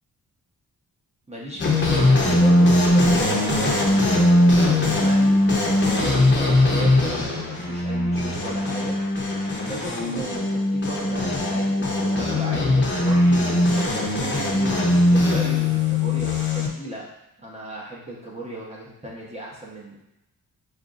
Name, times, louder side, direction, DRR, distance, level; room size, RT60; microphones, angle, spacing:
voice 1, 1.3-5.4 5.9-9.0 9.6-17.0 17.4-20.0, right 1 dB, 15° right, -5 dB, 0.9 m, -36 dB
sound 1, 1.6-16.7, left 1 dB, 30° left, 0.8 m, -20 dB
5.2 x 3.0 x 2.5 m, 0.88 s
wide cardioid pair, 145°, 37 cm